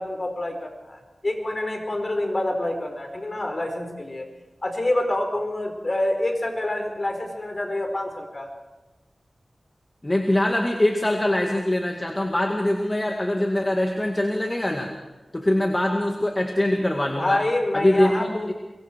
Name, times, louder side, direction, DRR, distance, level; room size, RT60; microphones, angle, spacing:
voice 1, 0.0-4.3 4.6-8.5 17.1-18.5, left 1 dB, 40° left, 3 dB, 4.7 m, -27 dB
voice 2, 10.0-14.9 15.3-17.4 17.7-18.5, left 1 dB, 25° left, 2 dB, 2.1 m, -23 dB
24.0 x 22.5 x 4.7 m, 1.1 s
wide cardioid pair, 60°, 0 cm